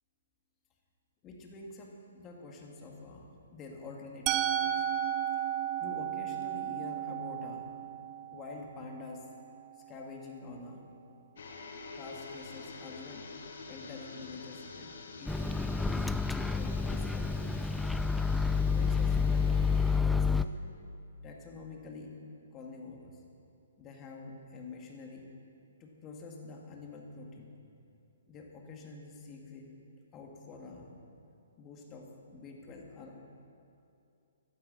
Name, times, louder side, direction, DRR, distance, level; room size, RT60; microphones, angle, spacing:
voice 1, 1.2-4.9 5.3-5.4 5.8-7.8 8.3-9.2 9.8-10.9 11.9-13.3 13.7-16.1 16.4-17.7 18.4-20.6 21.2-22.2 22.5-23.2 23.8-25.3 25.8-27.6 28.3-29.7 30.1-31.0 31.6-33.2, left 3 dB, 25° left, 0 dB, 2.1 m, -47 dB
Musical instrument, 4.3-10.2, right 10 dB, 30° right, 0.6 m, -34 dB
sound 1, 11.4-20.0, left 4 dB, 65° left, 1.5 m, -47 dB
Microwave oven, 15.3-20.4, left 5 dB, 5° left, 0.3 m, -29 dB
16.5 x 12.0 x 4.1 m, 2.6 s
hypercardioid pair, 130°, 0 cm